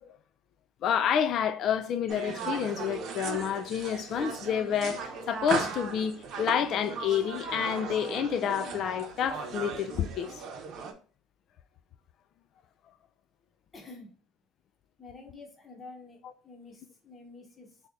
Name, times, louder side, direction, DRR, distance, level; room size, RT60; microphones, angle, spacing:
voice 1, 0.8-10.3, left 8 dB, 50° left, 0.3 m, -29 dB
sound 1, 2.1-10.9, right 5 dB, 55° right, 0.8 m, -37 dB
voice 2, 13.7-14.2 15.0-16.2 16.4-17.8, left 3 dB, 20° left, 0.9 m, -48 dB
3.2 x 2.8 x 3.7 m
cardioid pair, 125°, 0 cm